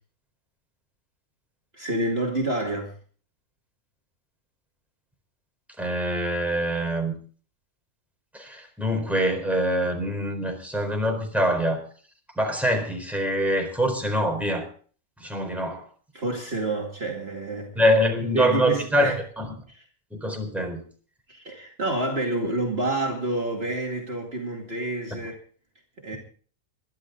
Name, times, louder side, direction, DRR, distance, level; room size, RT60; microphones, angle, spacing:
voice 1, 1.7-3.0 16.1-17.8 18.3-19.2 19.7-19.8 21.3-25.3 26.0-26.2, right 1 dB, 40° right, 0 dB, 2.5 m, -28 dB
voice 2, 5.8-7.2 8.3-11.8 12.4-14.7 15.2-15.8 17.8-19.5 20.1-20.8, equal, ahead, 2 dB, 4.1 m, -24 dB
22.5 x 11.5 x 3.9 m, 0.43 s
omnidirectional pair, 1.6 m